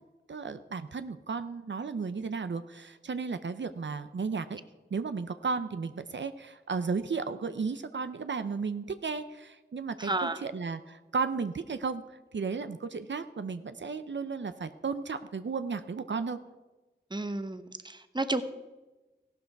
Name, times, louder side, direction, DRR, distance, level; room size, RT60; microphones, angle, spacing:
voice 1, 0.3-4.6 4.9-16.4, right 5 dB, 80° right, 10 dB, 0.7 m, -34 dB
voice 2, 10.0-10.4 17.1-18.4, right 2 dB, 25° right, 10 dB, 1.0 m, -32 dB
15.5 x 12.0 x 4.7 m, 1.1 s
wide cardioid pair, 60°, 19 cm